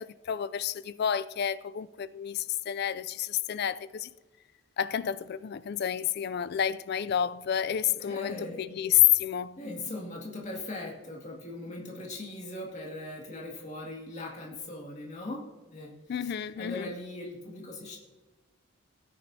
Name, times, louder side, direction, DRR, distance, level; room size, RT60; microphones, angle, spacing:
voice 1, 0.0-4.1 4.8-9.6 16.1-16.9, left 10 dB, 50° left, 0.3 m, -29 dB
voice 2, 8.0-8.7 9.6-18.0, left 2 dB, 35° left, 2.2 m, -40 dB
17.0 x 9.7 x 2.7 m
head